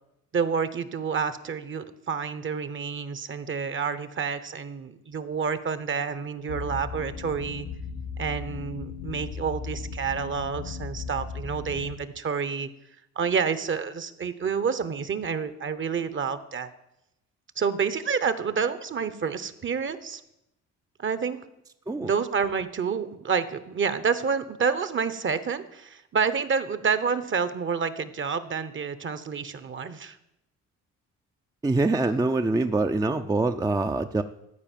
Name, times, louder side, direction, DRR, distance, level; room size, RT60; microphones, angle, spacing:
voice 1, 0.3-7.7 8.2-12.7 13.2-16.7 17.6-20.2 21.0-21.4 22.0-30.2, right 6 dB, 40° right, 13 dB, 1.0 m, -29 dB
sound 1, 6.5-12.0, left 5 dB, 90° left, 1.4 m, -36 dB
voice 2, 31.6-34.2, right 2 dB, 10° right, 7 dB, 0.5 m, -24 dB
14.0 x 4.9 x 9.1 m, 0.85 s
cardioid pair, 90°, 30 cm